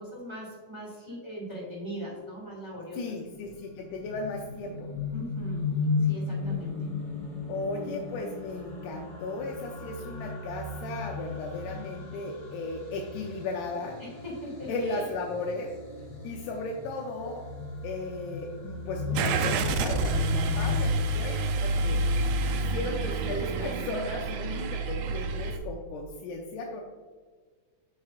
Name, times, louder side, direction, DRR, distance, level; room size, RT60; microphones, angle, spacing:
voice 1, 0.0-3.0 5.1-5.7 6.0-6.9 14.0-15.0, equal, 15° right, -5 dB, 0.9 m, -40 dB
sound 1, 2.8-20.9, left 3 dB, 50° left, 2.0 m, -36 dB
voice 2, 2.9-4.9 7.5-14.0 14.7-15.7 16.2-17.5 17.8-22.0 22.5-26.8, left 3 dB, 80° left, 1 dB, 1.9 m, -36 dB
Car / Engine starting, 19.1-25.6, right 2 dB, 80° right, 1.8 m, -28 dB
7.9 x 6.3 x 2.4 m, 1.5 s
omnidirectional pair, 3.9 m